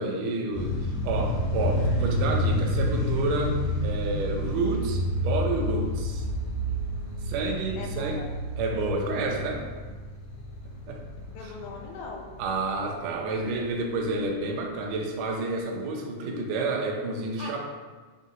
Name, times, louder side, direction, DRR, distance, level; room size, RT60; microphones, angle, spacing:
voice 1, 0.0-6.2 7.2-8.2 8.6-9.6 10.9-11.0 11.4-11.5 12.4-17.6, right 3 dB, 80° right, 0 dB, 1.5 m, -30 dB
sound 1, 0.5-13.6, equal, 65° left, 1.6 m, -29 dB
voice 2, 7.8-8.4 11.3-12.3 17.4-17.6, left 3 dB, 80° left, 1 dB, 2.1 m, -40 dB
5.8 x 2.6 x 2.7 m, 1.3 s
omnidirectional pair, 3.7 m